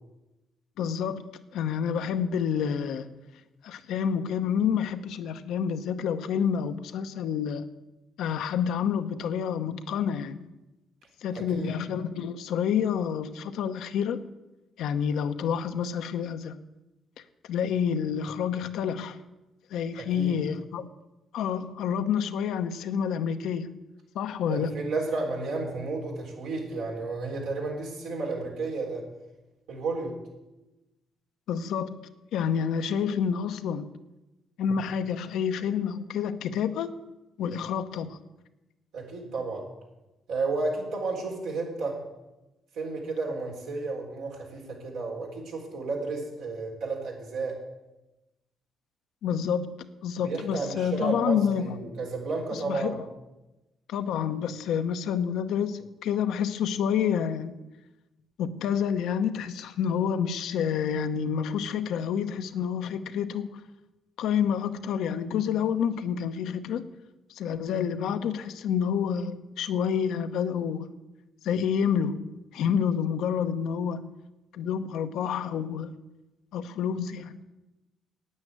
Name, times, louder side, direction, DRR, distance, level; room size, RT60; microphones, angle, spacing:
voice 1, 0.8-1.2 1.5-3.1 3.6-7.6 8.2-10.4 11.2-14.2 14.8-16.5 17.5-19.2 19.7-20.9 21.3-23.7 24.1-24.7 31.5-33.9 34.6-36.9 37.4-38.2 49.2-51.8 52.5-53.0 53.9-57.6 58.4-63.6 64.2-66.9 67.3-70.9 71.4-74.1 74.5-75.9 76.5-77.4, left 7 dB, 85° left, 9 dB, 0.8 m, -28 dB
voice 2, 11.3-11.7 20.0-20.4 24.5-29.1 29.7-30.2 38.9-39.7 40.3-42.0 42.7-47.6 50.1-53.0, right 3 dB, 90° right, -2 dB, 3.9 m, -32 dB
9.6 x 8.9 x 8.8 m, 1.0 s
cardioid pair, 90°, 0 cm